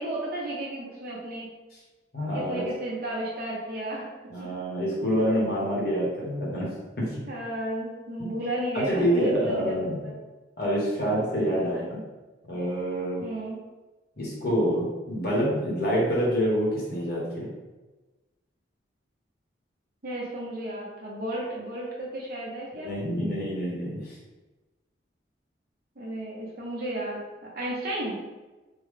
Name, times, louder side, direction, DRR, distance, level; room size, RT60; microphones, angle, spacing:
voice 1, 0.0-1.6 2.3-4.1 4.4-4.5 7.3-9.8 10.0-10.2 11.5-11.7 13.2-13.6 20.0-22.9 26.0-28.2, right 1 dB, 50° right, -4 dB, 0.9 m, -33 dB
voice 2, 2.1-2.7 4.3-7.2 8.2-8.3 8.7-10.0 10.6-12.0 12.5-13.2 14.2-17.5 22.8-24.2, equal, 55° left, -5 dB, 1.1 m, -27 dB
3.7 x 2.2 x 3.3 m, 1.2 s
head